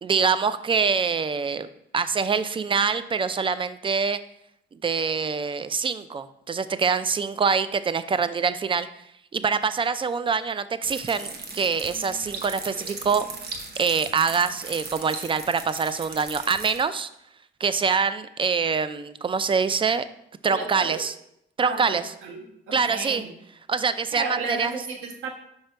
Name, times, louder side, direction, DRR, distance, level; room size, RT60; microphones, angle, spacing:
voice 1, 0.0-1.7 1.9-4.2 4.7-8.9 9.3-13.3 13.8-17.1 17.6-20.0 20.4-21.1 21.6-22.0 22.7-23.2 23.7-24.7, right 5 dB, 25° right, 13 dB, 0.4 m, -25 dB
sound 1, 10.8-16.8, right 4 dB, 55° right, 1.1 m, -37 dB
voice 2, 20.5-21.1 21.6-22.4 22.7-23.3 24.1-25.3, right 3 dB, 80° right, 2 dB, 1.4 m, -33 dB
5.2 x 5.2 x 4.6 m, 0.75 s
cardioid pair, 90°, 20 cm